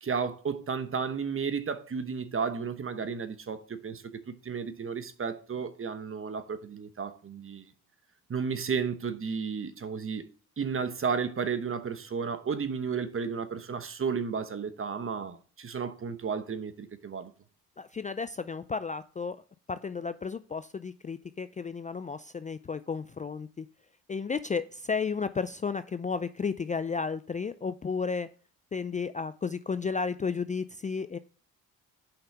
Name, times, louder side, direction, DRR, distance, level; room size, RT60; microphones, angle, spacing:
voice 1, 0.0-7.7 8.3-10.2 10.6-17.3, right 6 dB, 35° right, 1.1 m, -33 dB
voice 2, 17.8-19.4 19.7-23.7 24.1-28.3 28.7-31.2, left 5 dB, 20° left, 0.4 m, -33 dB
5.8 x 5.6 x 6.6 m
cardioid pair, 85°, 36 cm